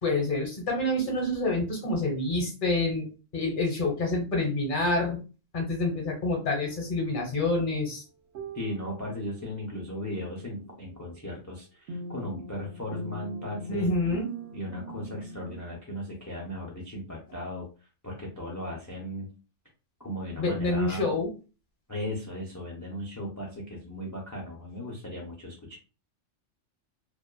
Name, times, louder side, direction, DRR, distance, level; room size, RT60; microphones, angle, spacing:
voice 1, 0.0-3.1 3.3-5.2 5.5-8.0 13.7-14.3 20.4-21.3, left 2 dB, 50° left, 0 dB, 1.1 m, -27 dB
sound 1, 6.5-6.8 8.4-9.4 11.9-15.6, right 2 dB, 75° right, 0.9 m, -41 dB
voice 2, 8.5-13.9 14.5-17.7 18.0-19.3 20.0-21.0 21.9-25.8, left 1 dB, 25° left, -2 dB, 0.4 m, -37 dB
2.6 x 2.3 x 2.3 m, 0.33 s
omnidirectional pair, 1.2 m